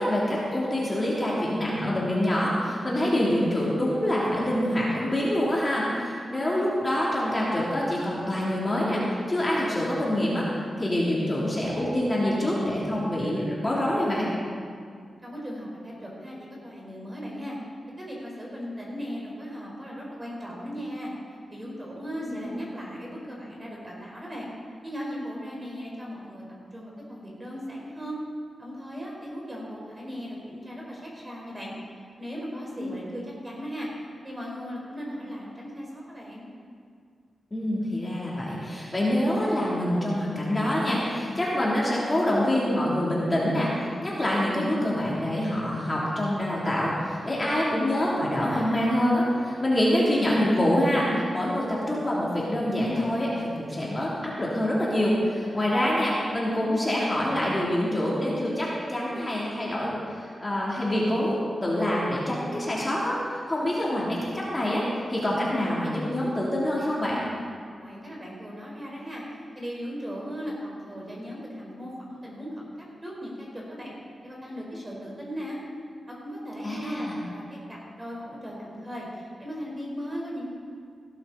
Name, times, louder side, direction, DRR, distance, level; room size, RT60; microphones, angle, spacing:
voice 1, 0.0-10.5 10.8-14.3 22.2-22.3 32.7-32.9 37.5-63.2 63.5-64.8 65.1-67.2 76.6-77.2, left 1 dB, 20° left, -6 dB, 3.0 m, -26 dB
voice 2, 15.2-16.4 16.6-17.6 18.0-21.1 21.5-24.5 24.8-26.4 26.7-28.2 28.6-31.7 32.2-36.5 67.8-69.2 69.5-73.9 74.2-75.6 76.1-80.5, equal, 20° right, -3 dB, 4.2 m, -37 dB
16.5 x 12.0 x 4.0 m, 2.2 s
wide cardioid pair, 95°, 0 cm